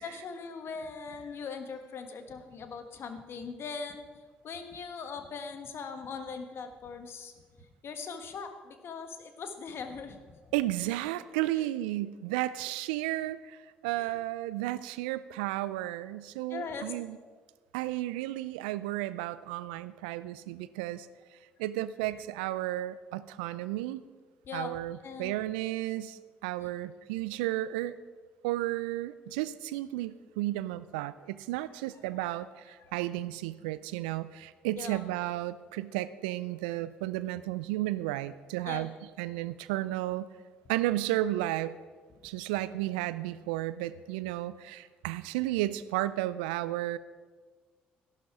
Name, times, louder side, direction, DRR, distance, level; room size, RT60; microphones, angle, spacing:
voice 1, 0.0-4.1 4.4-7.3 7.8-10.4 11.6-11.7 13.9-14.2 16.5-16.9 24.4-24.7 25.0-25.4 26.6-26.7 32.2-32.4 32.8-33.0 34.7-35.0 38.6-38.9, left 5 dB, 55° left, 7 dB, 1.4 m, -40 dB
voice 2, 10.5-17.2 17.7-21.1 21.6-24.0 24.5-28.0 28.4-38.9 39.2-40.3 40.7-41.8 42.2-47.0, right 15 dB, 80° right, 16 dB, 0.4 m, -33 dB
14.0 x 11.5 x 4.8 m, 1.5 s
hypercardioid pair, 50°, 5 cm